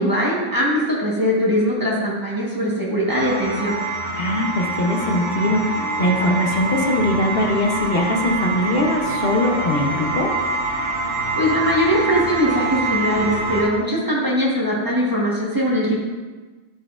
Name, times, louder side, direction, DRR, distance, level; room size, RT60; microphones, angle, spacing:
voice 1, 0.0-3.8 11.3-16.0, equal, 15° right, -5 dB, 1.4 m, -21 dB
sound 1, 3.1-13.6, right 3 dB, 50° right, 1.7 m, -25 dB
voice 2, 4.1-10.3, left 1 dB, 55° left, 1 dB, 1.1 m, -21 dB
11.0 x 4.3 x 2.5 m, 1.3 s
omnidirectional pair, 1.3 m